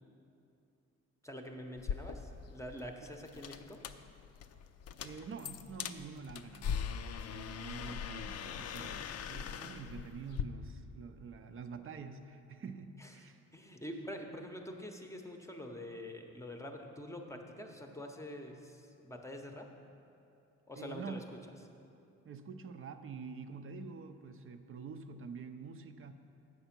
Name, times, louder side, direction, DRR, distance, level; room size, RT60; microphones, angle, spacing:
voice 1, 1.2-3.8 13.0-13.1 13.5-19.7 20.7-21.2, left 1 dB, 10° left, 3 dB, 0.7 m, -45 dB
sound 1, 1.8-10.4, left 7 dB, 55° left, 0.4 m, -41 dB
voice 2, 5.0-6.7 7.3-13.4 20.8-21.2 22.2-26.1, right 5 dB, 45° right, 8 dB, 0.5 m, -47 dB
8.1 x 6.1 x 5.9 m, 2.7 s
cardioid pair, 90°, 30 cm